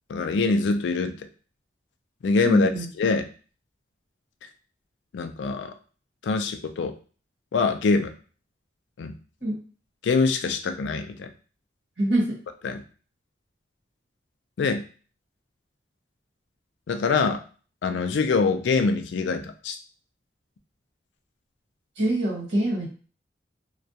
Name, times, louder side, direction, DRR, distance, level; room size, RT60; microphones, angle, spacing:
voice 1, 0.1-1.2 2.2-2.7 3.0-3.3 5.1-5.7 6.2-7.0 7.5-8.1 9.0-9.1 10.0-11.3 12.6-12.8 14.6-14.8 16.9-17.4 17.8-19.8, left 4 dB, 80° left, 8 dB, 0.3 m, -24 dB
voice 2, 2.4-2.9 9.4-9.6 12.0-12.2 22.0-22.9, right 1 dB, 85° right, -4 dB, 1.2 m, -24 dB
2.3 x 2.2 x 2.7 m, 0.39 s
head